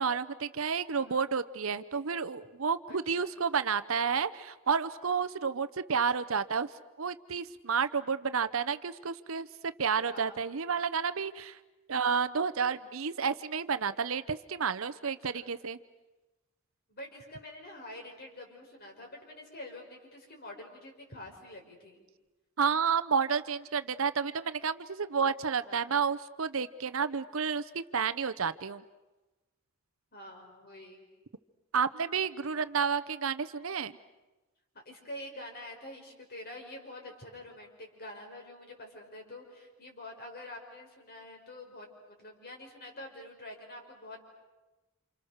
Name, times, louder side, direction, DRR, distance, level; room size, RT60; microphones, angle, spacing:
voice 1, 0.0-6.7 7.0-9.5 9.8-11.6 11.9-15.8 22.6-28.8 31.7-33.9, right 6 dB, 65° right, 13 dB, 0.8 m, -30 dB
voice 2, 2.9-3.3 10.0-10.4 15.0-15.5 16.9-22.1 25.6-25.9 30.1-31.1 32.1-32.2 34.9-44.2, left 1 dB, 45° left, 2 dB, 5.4 m, -47 dB
29.5 x 28.0 x 6.6 m, 1.1 s
head